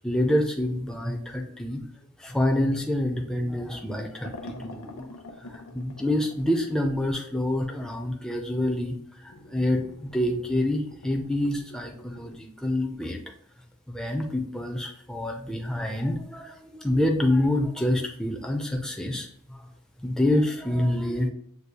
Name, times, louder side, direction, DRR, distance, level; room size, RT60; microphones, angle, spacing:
voice 1, 0.0-1.8 2.2-13.2 13.9-19.7 20.0-21.3, left 1 dB, 5° left, 1 dB, 0.4 m, -27 dB
sound 1, 4.2-6.9 9.3-12.4, left 2 dB, 85° left, 0.7 m, -45 dB
6.7 x 3.1 x 2.2 m, 0.68 s
head